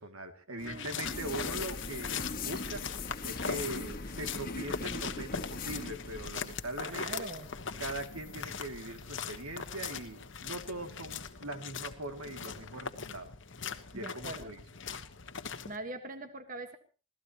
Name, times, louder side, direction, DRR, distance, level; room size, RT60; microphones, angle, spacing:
voice 1, 0.0-2.9 3.2-7.3 7.8-13.3 13.9-14.6, right 1 dB, 90° right, 7 dB, 2.5 m, -41 dB
sound 1, 0.6-15.8, left 6 dB, 60° left, 1.3 m, -41 dB
voice 2, 0.6-1.2 6.8-7.5 13.9-14.5 15.6-16.8, right 2 dB, 40° right, 8 dB, 1.5 m, -42 dB
sound 2, 1.0-11.2, left 4 dB, 40° left, 1.6 m, -41 dB
26.0 x 17.0 x 3.0 m, 0.35 s
head